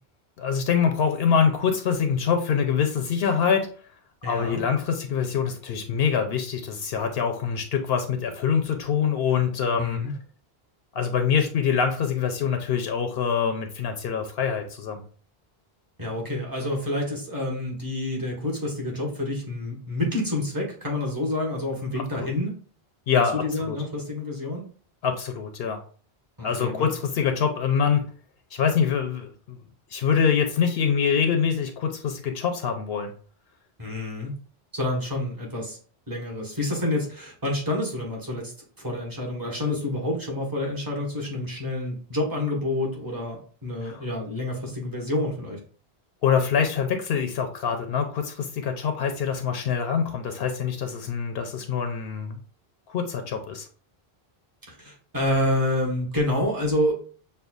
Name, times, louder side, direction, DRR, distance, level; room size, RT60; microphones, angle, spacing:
voice 1, 0.4-3.7 4.2-10.0 10.9-15.0 22.2-22.3 23.1-23.8 25.0-25.8 26.4-28.0 28.5-29.6 29.9-33.1 43.8-44.0 46.2-52.4 52.9-53.6, left 7 dB, 75° left, 5 dB, 0.8 m, -25 dB
voice 2, 4.2-4.6 9.7-10.1 16.0-22.5 23.3-24.6 26.4-26.9 33.8-34.3 34.7-35.8 36.1-38.5 38.8-45.6 54.7-57.0, left 1 dB, 20° right, -2 dB, 1.2 m, -28 dB
6.5 x 2.3 x 2.3 m, 0.42 s
omnidirectional pair, 1.0 m